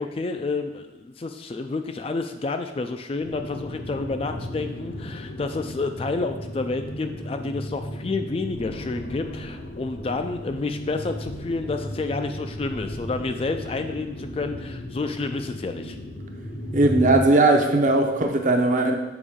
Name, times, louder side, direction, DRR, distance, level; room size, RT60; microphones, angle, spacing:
voice 1, 0.0-16.0, left 3 dB, 30° left, 7 dB, 0.3 m, -29 dB
sound 1, 3.2-17.3, equal, 45° left, 0.7 m, -35 dB
voice 2, 16.7-19.0, right 2 dB, 40° right, 4 dB, 0.6 m, -18 dB
6.9 x 5.1 x 3.6 m, 1.1 s
head